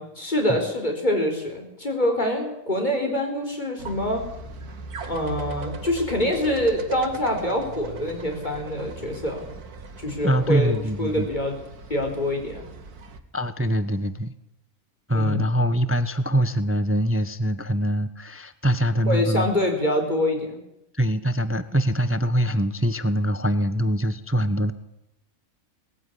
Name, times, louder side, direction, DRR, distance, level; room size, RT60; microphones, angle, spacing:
voice 1, 0.0-4.2 5.0-9.4 10.0-11.6 11.9-12.6 15.1-15.4 19.1-20.6, left 1 dB, 30° left, 3 dB, 4.8 m, -25 dB
sound 1, 3.8-13.2, right 4 dB, 80° right, 2.1 m, -38 dB
voice 2, 10.2-11.3 13.3-14.3 15.1-19.5 20.9-24.7, equal, 10° right, 13 dB, 0.7 m, -23 dB
20.0 x 14.5 x 10.0 m, 0.83 s
omnidirectional pair, 1.6 m